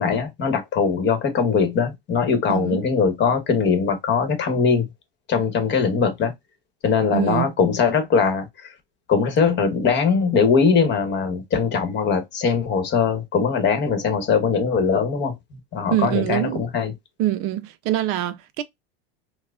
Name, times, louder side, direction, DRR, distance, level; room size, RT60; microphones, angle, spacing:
voice 1, 0.0-4.9 5.3-6.3 6.8-8.7 9.1-16.9, left 5 dB, 35° left, 1.1 m, -21 dB
voice 2, 2.5-2.8 7.1-7.5 15.9-16.6 17.2-18.6, right 13 dB, 45° right, 0.5 m, -24 dB
4.7 x 2.1 x 2.3 m
hypercardioid pair, 110°, 30 cm